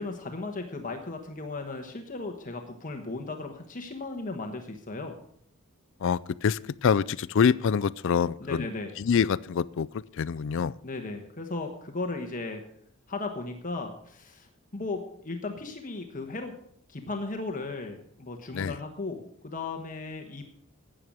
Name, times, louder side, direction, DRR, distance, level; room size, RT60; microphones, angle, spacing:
voice 1, 0.0-5.2 8.4-8.9 10.8-12.6 13.1-16.5 16.9-20.4, left 3 dB, 40° left, 1.3 m, -36 dB
voice 2, 6.0-8.7 9.0-10.8 18.5-18.8, left 6 dB, 65° left, 0.4 m, -26 dB
12.5 x 8.9 x 6.3 m
head